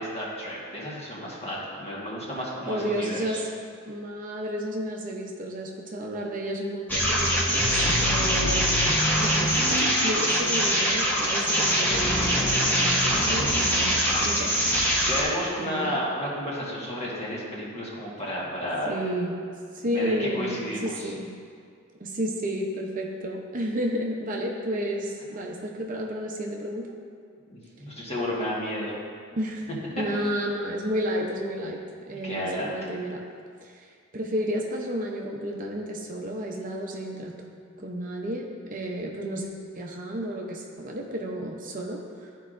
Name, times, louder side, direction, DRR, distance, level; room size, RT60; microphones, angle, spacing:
voice 1, 0.0-3.4 14.0-19.0 19.9-21.1 27.5-29.0 32.2-32.9, equal, 30° left, -6 dB, 1.5 m, -32 dB
voice 2, 2.7-3.5 3.9-8.7 9.2-13.9 14.2-14.5 15.6-16.0 18.9-19.5 19.7-21.3 22.0-27.0 29.3-29.7 30.0-31.8 32.1-33.2 33.6-33.9 34.1-37.3 37.8-39.5 39.7-42.0, equal, 40° right, 0 dB, 0.6 m, -31 dB
sound 1, 6.9-15.2, equal, 10° left, 1.0 m, -23 dB
13.0 x 4.6 x 2.5 m, 2.1 s
head